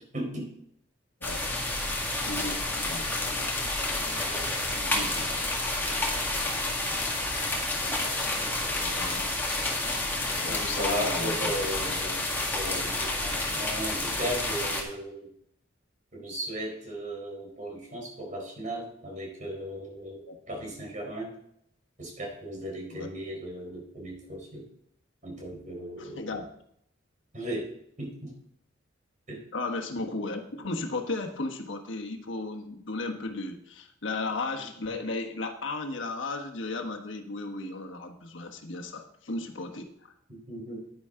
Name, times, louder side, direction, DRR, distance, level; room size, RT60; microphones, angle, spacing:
voice 1, 0.1-0.5 10.5-12.2 12.5-15.3 16.1-21.3 22.0-24.6 25.2-26.3 27.3-27.7 28.0-28.3 29.3-29.4 40.3-40.9, right 1 dB, 40° right, -1 dB, 4.2 m, -36 dB
sound 1, 1.2-14.8, left 2 dB, 10° left, 1.9 m, -29 dB
voice 2, 2.2-3.1 4.7-5.4 8.8-9.3 10.3-11.6 20.3-20.4 22.9-23.1 26.0-26.5 29.5-40.1, left 3 dB, 80° left, 3 dB, 1.4 m, -35 dB
10.5 x 10.0 x 3.8 m, 0.71 s
head